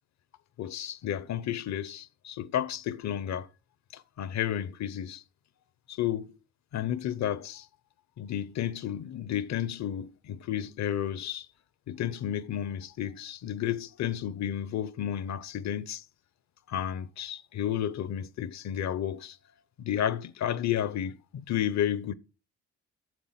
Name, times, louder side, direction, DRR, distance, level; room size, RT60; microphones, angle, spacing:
voice 1, 0.6-3.5 3.9-5.2 5.9-6.3 6.7-7.7 8.2-11.5 11.9-16.0 16.7-19.4 19.8-22.1, left 10 dB, 65° left, 0.8 m, -32 dB
9.3 x 7.1 x 5.8 m
cardioid pair, 90°, 30 cm